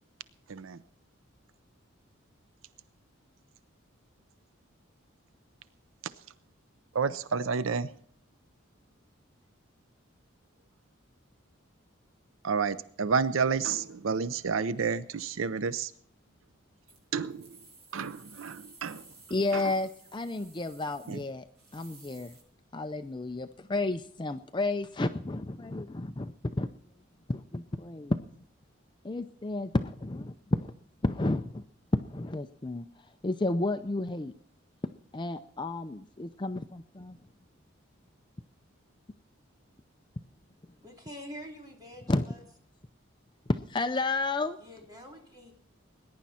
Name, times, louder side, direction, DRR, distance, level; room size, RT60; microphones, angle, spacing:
voice 1, 6.9-7.9 12.4-15.9 17.1-17.6 17.9-19.0 19.5-19.6 21.1-21.2, right 5 dB, 75° right, 0.5 m, -30 dB
sound 1, 16.9-22.4, right 3 dB, 50° right, 7.1 m, -55 dB
voice 2, 19.3-21.4 21.7-22.3 22.7-26.7 27.3-28.2 29.0-30.7 31.0-31.6 31.9-32.8 33.2-34.3 35.1-37.2 42.1-42.3 43.5-44.6, left 2 dB, 20° left, 0.5 m, -31 dB
voice 3, 40.8-42.4 44.6-45.5, equal, 20° right, 3.2 m, -46 dB
20.5 x 10.5 x 4.3 m
head